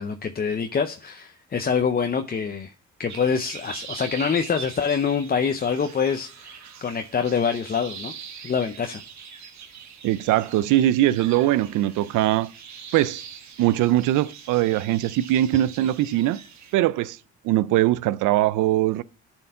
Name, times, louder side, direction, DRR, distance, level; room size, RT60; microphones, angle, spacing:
voice 1, 0.0-2.7 3.0-8.1 8.4-9.0, left 6 dB, 30° left, 0.6 m, -25 dB
sound 1, 3.1-16.7, right 7 dB, 65° right, 1.4 m, -42 dB
voice 2, 10.0-12.5 12.9-13.2 13.6-16.4 16.7-17.2 17.4-19.0, right 14 dB, 90° right, 0.5 m, -21 dB
10.5 x 4.5 x 5.5 m
cardioid pair, 90°, 30 cm